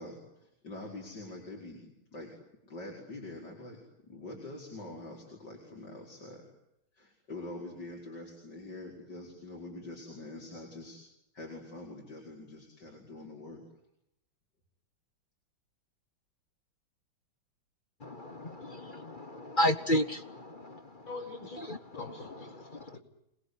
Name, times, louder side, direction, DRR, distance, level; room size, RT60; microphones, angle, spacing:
voice 1, 0.0-2.3 2.7-6.5 7.0-11.0 11.3-13.6, left 2 dB, 55° left, -1 dB, 5.7 m, -45 dB
voice 2, 18.0-21.1 21.6-21.8 22.3-23.0, left 1 dB, 35° left, 11 dB, 0.9 m, -33 dB
voice 3, 21.1-23.0, left 3 dB, 70° left, 4 dB, 6.3 m, -45 dB
27.0 x 20.5 x 9.6 m, 0.84 s
omnidirectional pair, 2.2 m